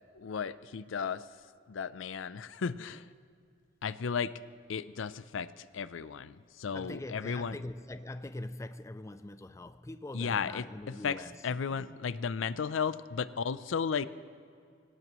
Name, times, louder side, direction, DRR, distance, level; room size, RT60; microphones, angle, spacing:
voice 1, 0.1-1.2 1.7-3.0 3.8-4.3 4.7-7.6 10.1-14.1, left 6 dB, 85° left, 0.5 m, -34 dB
voice 2, 6.7-12.0, left 1 dB, 15° left, 0.3 m, -43 dB
24.5 x 17.5 x 3.0 m
head